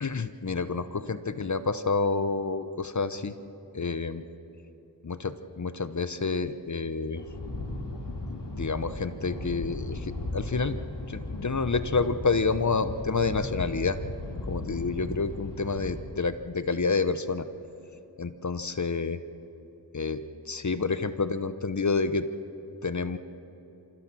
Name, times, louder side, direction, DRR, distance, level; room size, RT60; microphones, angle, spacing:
voice 1, 0.0-3.3 3.7-4.2 5.0-7.2 8.3-10.8 11.1-14.0 14.5-17.5 18.2-19.2 19.9-20.2 20.5-22.3 22.8-23.2, left 4 dB, 40° left, 12 dB, 1.0 m, -29 dB
sound 1, 7.2-16.0, left 2 dB, 70° left, 3.0 m, -36 dB
26.5 x 16.0 x 6.3 m, 3.0 s
cardioid pair, 45°, 44 cm